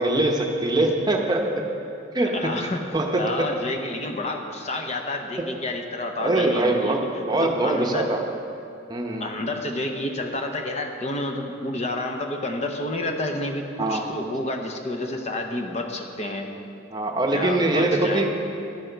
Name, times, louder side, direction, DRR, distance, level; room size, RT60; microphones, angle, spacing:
voice 1, 0.0-1.6 2.1-2.3 2.9-3.2 6.2-8.2 8.9-9.3 13.8-14.0 16.9-18.3, right 2 dB, 20° right, 1 dB, 0.8 m, -23 dB
voice 2, 2.2-2.8 3.2-8.1 9.2-16.5 17.3-18.3, left 1 dB, 35° left, 4 dB, 0.8 m, -30 dB
11.5 x 10.5 x 4.6 m, 2.6 s
head